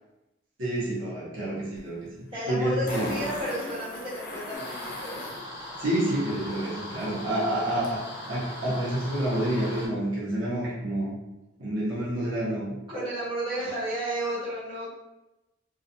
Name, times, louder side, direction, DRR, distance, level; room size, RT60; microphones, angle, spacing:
voice 1, 0.6-3.1 5.8-8.0 8.3-11.1 11.6-12.7 13.6-13.7, right 1 dB, 85° right, -7 dB, 0.8 m, -28 dB
Fart, 1.8-1.9 2.9-5.4 7.8-7.9, left 1 dB, 45° left, 0.6 m, -37 dB
voice 2, 2.3-5.3 12.9-14.9, equal, 25° right, -10 dB, 1.2 m, -32 dB
sound 1, 4.5-9.9, left 1 dB, 5° right, 1.0 m, -39 dB
2.3 x 2.2 x 2.7 m, 0.99 s
head